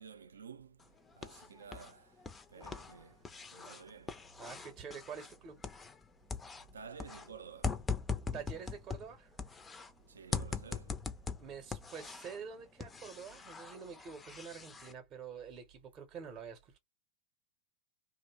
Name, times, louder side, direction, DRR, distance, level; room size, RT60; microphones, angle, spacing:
voice 1, 0.0-4.3 6.7-7.8 10.1-11.0, right 6 dB, 70° right, 0.4 m, -53 dB
sound 1, 0.8-1.9 2.2-6.0 6.3-9.9 10.3-12.4 12.8-14.9, left 5 dB, 15° left, 0.4 m, -41 dB
voice 2, 4.4-5.6 8.3-9.5 11.4-16.8, right 6 dB, 30° right, 0.7 m, -47 dB
2.7 x 2.1 x 3.0 m
figure-of-eight pair, 90°, 0 cm